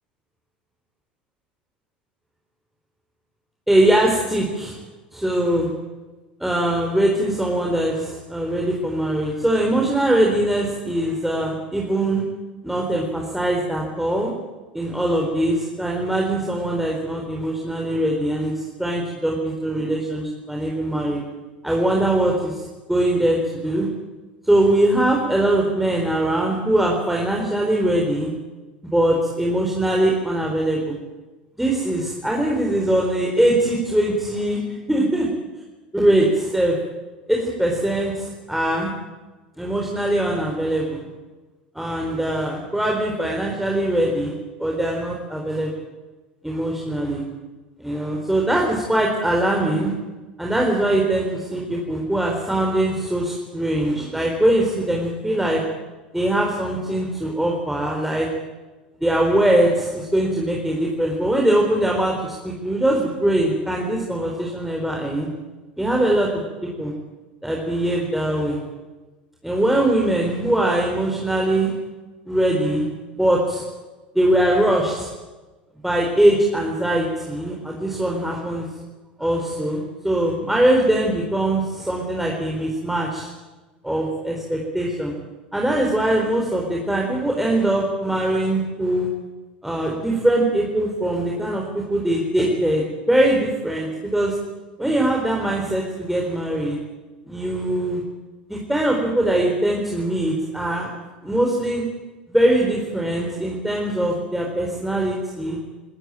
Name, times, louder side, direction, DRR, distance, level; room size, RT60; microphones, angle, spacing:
voice 1, 3.7-4.8 5.1-5.7 6.4-12.2 12.6-14.3 14.7-21.2 21.6-23.4 23.6-23.9 24.4-28.3 28.9-31.0 31.6-35.3 35.9-36.8 37.3-38.9 39.6-41.1 41.7-45.7 46.4-47.2 47.8-49.9 50.4-55.6 56.1-58.3 59.0-65.3 65.8-66.3 66.8-66.9 67.4-68.6 69.4-71.7 72.3-72.9 73.2-73.6 74.1-75.1 75.8-78.7 79.2-83.3 83.8-85.1 85.5-89.1 89.6-94.4 94.8-96.8 97.3-98.0 98.5-100.9 101.2-101.8 102.3-105.6, right 1 dB, 5° right, -1 dB, 4.3 m, -21 dB
27.5 x 14.5 x 9.0 m, 1.2 s
figure-of-eight pair, 80°, 5 cm